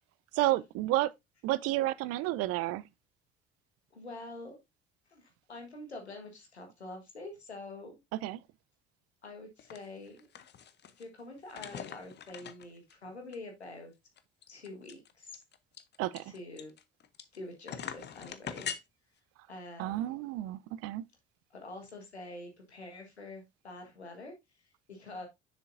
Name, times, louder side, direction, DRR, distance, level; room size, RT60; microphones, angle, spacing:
voice 1, 0.3-1.1 1.4-2.8 8.2-8.4 16.0-16.2 19.8-21.0, right 16 dB, 50° right, 0.5 m, -31 dB
voice 2, 3.9-4.6 5.1-8.0 9.2-10.3 11.0-13.9 14.5-15.4 16.2-16.7 17.3-18.8 19.5-20.2 21.5-25.3, left 2 dB, 85° left, 1.6 m, -46 dB
sound 1, 9.6-9.8 10.1-11.0 11.5-12.9 13.3-13.4 13.6-13.7 14.2-17.4 17.7-18.8, left 8 dB, 35° left, 0.8 m, -42 dB
7.1 x 6.8 x 2.6 m
figure-of-eight pair, 55°, 32 cm